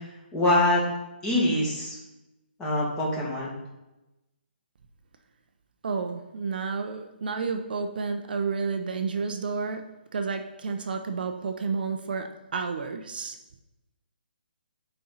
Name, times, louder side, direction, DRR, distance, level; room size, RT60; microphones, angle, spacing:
voice 1, 0.3-0.8 1.2-2.0 2.6-3.5, left 1 dB, 15° left, -4 dB, 2.0 m, -24 dB
voice 2, 5.8-13.4, right 4 dB, 60° right, 6 dB, 0.7 m, -31 dB
10.0 x 4.5 x 4.0 m, 0.99 s
hypercardioid pair, 155°, 6 cm